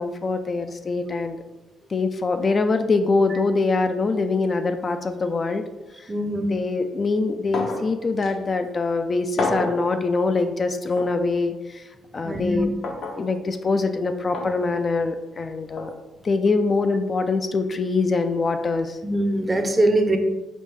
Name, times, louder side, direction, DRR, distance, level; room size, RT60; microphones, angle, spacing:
voice 1, 0.0-1.4 1.9-5.6 6.5-11.8 12.1-12.7 13.2-15.9 16.2-19.0, left 3 dB, 40° left, 8 dB, 0.3 m, -23 dB
voice 2, 6.1-6.5 12.2-12.6 19.0-20.2, right 1 dB, 25° right, 6 dB, 0.5 m, -22 dB
sound 1, 7.5-7.9 8.2-8.3 9.4-9.8 11.0-11.1 12.8-13.2 14.3-14.5 15.8-15.9, left 2 dB, 65° left, 0.8 m, -27 dB
5.2 x 2.7 x 3.1 m, 1.1 s
cardioid pair, 90°, 0 cm